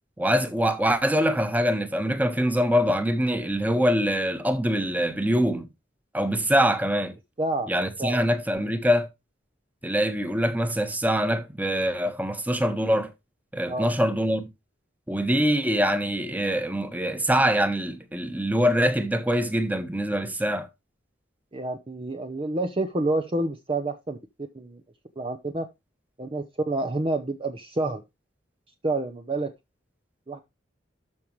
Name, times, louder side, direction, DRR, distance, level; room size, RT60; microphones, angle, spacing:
voice 1, 0.2-5.7 6.1-7.1 7.7-9.1 9.8-13.1 13.5-14.5 15.1-20.7, equal, 10° right, 1.3 m, -24 dB
voice 2, 7.4-7.7 8.0-8.3 13.7-13.9 21.5-24.8 25.2-25.6 26.2-28.0 28.8-29.5 30.3-30.4, right 2 dB, 30° right, 0.8 m, -28 dB
13.0 x 5.2 x 3.1 m
head